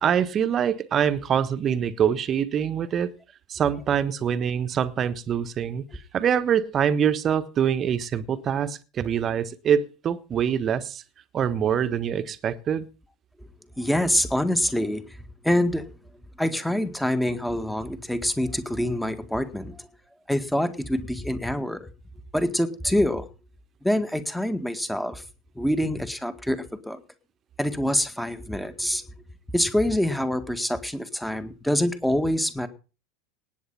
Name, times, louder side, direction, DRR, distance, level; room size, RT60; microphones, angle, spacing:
voice 1, 0.0-3.1 3.5-5.8 6.1-11.0 11.3-12.9, right 8 dB, 35° right, 1.3 m, -24 dB
voice 2, 13.8-15.0 15.4-15.8 16.4-19.9 20.3-21.9 22.3-23.3 23.8-25.2 25.6-27.0 27.6-29.0 29.5-32.7, left 1 dB, 5° left, 1.9 m, -25 dB
18.5 x 8.7 x 5.7 m
figure-of-eight pair, 80°, 0 cm